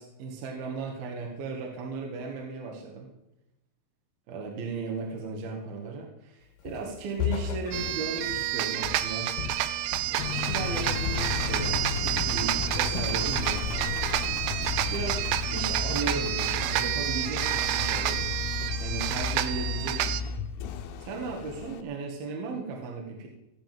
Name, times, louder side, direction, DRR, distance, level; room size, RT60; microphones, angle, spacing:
voice 1, 0.0-3.1 4.3-9.3 10.1-13.9 14.9-18.3 18.8-20.3 21.0-23.3, right 4 dB, 60° right, 1 dB, 3.2 m, -36 dB
Walk footsteps, 6.7-6.9 7.2-10.2 10.5-10.8 11.1-12.4 12.8-13.2, left 8 dB, 55° left, 3.0 m, -35 dB
sound 1, 7.7-20.2, right 13 dB, 90° right, 2.3 m, -29 dB
Engine, 10.2-21.8, left 6 dB, 75° left, 2.5 m, -33 dB
16.5 x 7.5 x 7.7 m, 0.94 s
omnidirectional pair, 5.4 m